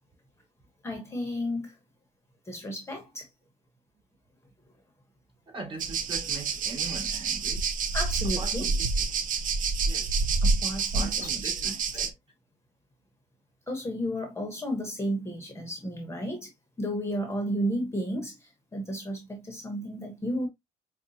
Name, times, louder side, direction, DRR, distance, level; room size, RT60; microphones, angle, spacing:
voice 1, 0.8-1.7 2.5-3.3 7.9-8.7 10.4-11.8 13.7-16.5 16.8-20.5, equal, 15° left, 1.1 m, -33 dB
voice 2, 5.5-7.7 8.4-9.0 9.8-10.1 10.9-12.2, right 3 dB, 35° right, 2.9 m, -41 dB
sound 1, 5.8-12.1, right 4 dB, 50° right, 0.6 m, -28 dB
5.1 x 2.4 x 2.7 m
cardioid pair, 110°, 17 cm